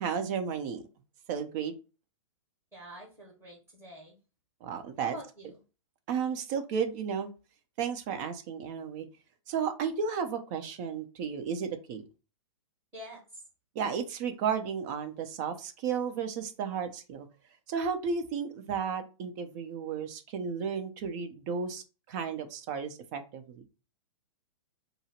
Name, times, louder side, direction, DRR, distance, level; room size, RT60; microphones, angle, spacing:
voice 1, 0.0-0.8 1.3-1.7 4.6-5.2 6.1-7.3 7.8-9.1 9.5-12.0 13.7-17.3 17.7-23.6, right 6 dB, 35° right, 7 dB, 0.7 m, -33 dB
voice 2, 2.7-4.2 5.0-5.5 6.3-6.4 12.9-13.4, equal, 15° right, -3 dB, 1.8 m, -46 dB
5.3 x 2.0 x 4.4 m, 0.32 s
hypercardioid pair, 150°, 16 cm